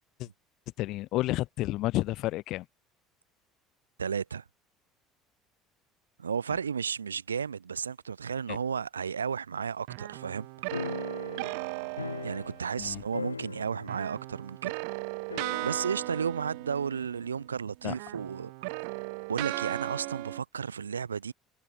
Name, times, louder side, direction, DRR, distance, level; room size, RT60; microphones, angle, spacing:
voice 1, 0.8-2.7 8.5-8.6 12.8-13.0 17.8-17.9, left 17 dB, 55° left, 7.8 m, -30 dB
voice 2, 4.0-4.4 6.2-11.0 12.2-14.7 15.6-18.7 19.3-21.3, right 6 dB, 85° right, 3.3 m, -33 dB
sound 1, 9.9-13.0 13.9-17.6 17.8-20.4, right 37 dB, 65° right, 1.3 m, -37 dB
sound 2, 10.7-12.8 13.1-14.1 14.4-14.5 15.3-16.1, left 4 dB, 85° left, 2.0 m, -39 dB
figure-of-eight pair, 60°, 0 cm